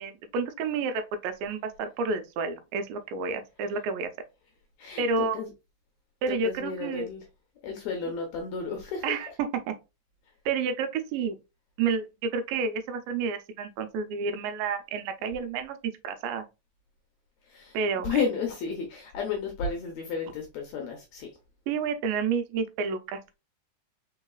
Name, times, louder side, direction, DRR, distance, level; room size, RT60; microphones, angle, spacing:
voice 1, 0.0-4.1 5.0-5.4 6.2-7.1 9.0-9.7 10.5-11.4 11.8-15.8 16.0-16.5 17.7-18.1 21.7-23.2, right 5 dB, 90° right, 2.4 m, -30 dB
voice 2, 4.8-5.5 6.3-7.2 7.6-9.2 17.5-21.3, left 5 dB, 75° left, 1.7 m, -32 dB
4.6 x 4.0 x 2.3 m
omnidirectional pair, 4.0 m